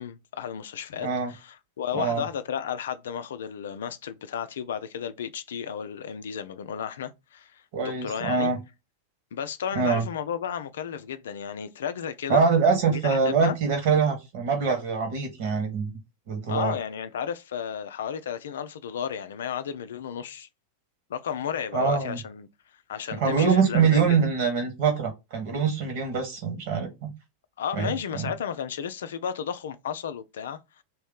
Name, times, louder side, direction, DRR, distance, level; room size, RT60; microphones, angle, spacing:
voice 1, 0.0-8.5 9.3-12.4 12.9-13.6 16.5-20.5 21.1-22.5 22.9-24.2 27.6-30.8, left 8 dB, 60° left, 0.4 m, -33 dB
voice 2, 1.0-1.3 1.9-2.2 7.7-8.6 9.7-10.0 12.3-15.9 16.3-16.7 21.7-22.2 23.1-27.1 27.8-28.3, right 5 dB, 50° right, 1.4 m, -24 dB
3.1 x 2.7 x 3.7 m
figure-of-eight pair, 90°, 0 cm